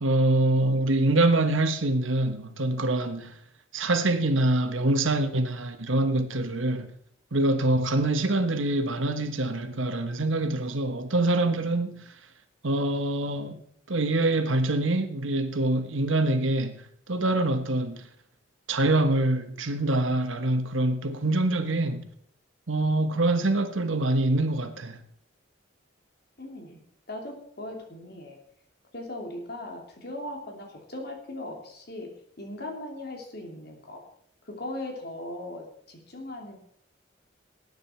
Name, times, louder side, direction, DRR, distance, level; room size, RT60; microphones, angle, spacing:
voice 1, 0.0-3.3 3.7-6.9 7.3-12.0 12.6-13.6 13.9-16.8 17.1-18.0 18.7-22.1 22.7-25.0, right 2 dB, 85° right, 1.4 m, -25 dB
voice 2, 26.4-26.8 27.1-28.4 28.9-34.0 34.4-36.6, left 1 dB, 50° left, 3.1 m, -39 dB
19.0 x 9.4 x 4.5 m
head